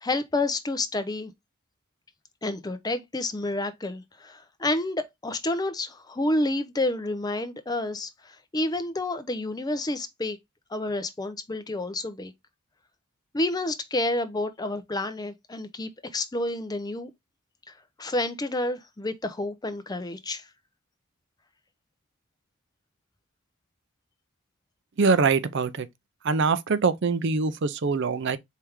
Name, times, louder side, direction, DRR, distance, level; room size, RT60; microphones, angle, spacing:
voice 1, 0.0-1.3 2.4-10.4 10.7-12.3 13.3-17.1 18.0-20.4, left 2 dB, 20° left, 0.5 m, -29 dB
voice 2, 25.0-25.9 26.2-28.4, right 4 dB, 55° right, 0.5 m, -23 dB
4.6 x 3.4 x 3.4 m
head